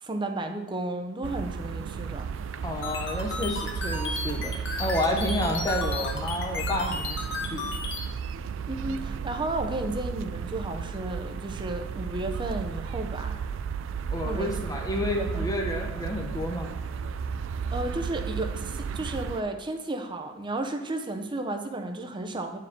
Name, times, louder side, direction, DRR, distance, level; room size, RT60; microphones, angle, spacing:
voice 1, 0.0-2.3 8.7-13.4 14.2-14.6 15.0-15.5 17.7-22.6, right 2 dB, 25° right, 5 dB, 0.6 m, -33 dB
sound 1, 1.2-19.4, right 6 dB, 75° right, 0.3 m, -33 dB
voice 2, 2.6-7.2 7.5-7.7 14.1-16.7, left 1 dB, 20° left, 1 dB, 0.8 m, -30 dB
sound 2, 2.8-8.0, left 3 dB, 65° left, 1.1 m, -34 dB
9.4 x 4.7 x 3.6 m, 1.0 s
head